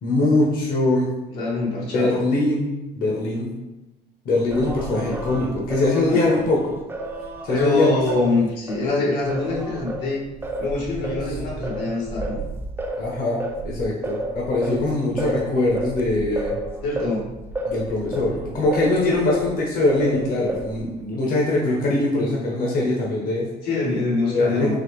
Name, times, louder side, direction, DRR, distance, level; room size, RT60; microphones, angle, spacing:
voice 1, 0.0-1.1 1.9-3.5 4.2-6.8 7.4-7.9 13.0-16.5 17.7-23.5 24.3-24.7, left 2 dB, 60° left, -3 dB, 0.9 m, -22 dB
voice 2, 1.3-2.2 6.1-6.4 7.5-10.2 10.6-12.4 16.8-17.3 23.6-24.7, left 2 dB, 85° left, -4 dB, 1.3 m, -24 dB
Singing, 4.5-8.9 9.3-19.6 19.9-20.9, right 1 dB, 15° right, 0.4 m, -31 dB
4.1 x 3.0 x 3.1 m, 1.0 s
cardioid pair, 110°, 17 cm